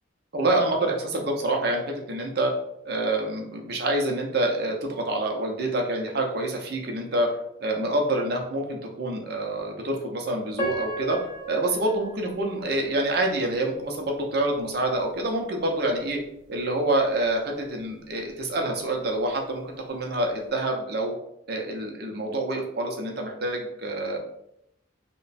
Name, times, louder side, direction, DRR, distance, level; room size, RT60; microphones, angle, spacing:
voice 1, 0.3-2.5 2.8-7.3 7.6-11.2 11.5-16.2 16.5-19.6 19.9-21.1 21.5-24.2, right 1 dB, 50° right, 1 dB, 0.7 m, -27 dB
Piano, 10.6-13.6 14.1-14.2 14.9-15.1, right 2 dB, 15° left, 0.6 m, -35 dB
3.1 x 2.2 x 4.0 m, 0.77 s
head